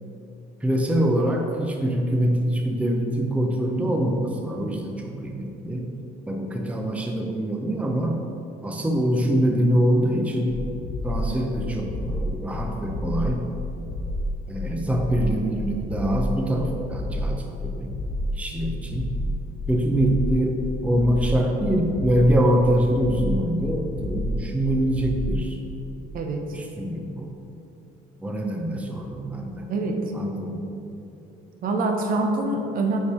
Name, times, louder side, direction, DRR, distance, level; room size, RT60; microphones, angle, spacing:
voice 1, 0.6-5.9 6.3-8.2 8.6-10.6 11.0-13.4 14.5-17.9 18.3-19.1 19.7-20.6 20.8-25.6 26.5-27.3 28.2-29.7 30.1-30.6, right 1 dB, 10° right, 1 dB, 0.6 m, -24 dB
sound 1, 10.5-25.4, left 1 dB, 85° left, 0.7 m, -30 dB
voice 2, 26.1-26.6 29.7-30.1 30.4-30.8 31.6-33.0, right 2 dB, 55° right, 3 dB, 0.8 m, -26 dB
5.7 x 4.6 x 4.8 m, 2.9 s
cardioid pair, 110°, 17 cm